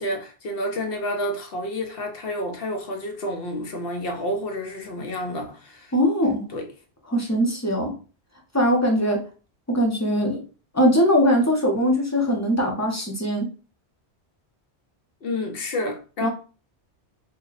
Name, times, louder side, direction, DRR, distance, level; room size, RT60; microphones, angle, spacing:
voice 1, 0.0-5.9 6.5-6.6 15.2-16.3, left 1 dB, 60° left, 0.8 m, -29 dB
voice 2, 5.9-6.4 7.1-7.9 8.5-9.2 9.7-10.4 10.7-13.5 16.2-16.3, equal, 20° left, 0.5 m, -21 dB
2.6 x 2.1 x 3.8 m
omnidirectional pair, 1.1 m